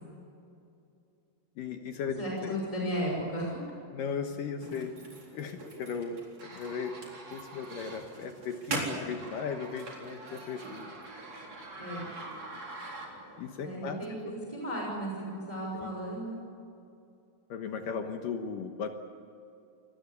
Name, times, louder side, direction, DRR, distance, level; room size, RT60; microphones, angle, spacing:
voice 1, 1.6-2.6 3.9-5.0 5.3-10.9 13.4-14.0 15.7-16.0 17.5-18.9, left 6 dB, 65° left, 6 dB, 2.5 m, -37 dB
voice 2, 2.2-3.6 11.8-12.1 13.6-16.4, right 1 dB, 10° right, -3 dB, 5.4 m, -35 dB
sound 1, 4.6-13.4, right 2 dB, 40° right, 4.9 m, -42 dB
26.0 x 19.5 x 8.3 m, 2.7 s
omnidirectional pair, 4.7 m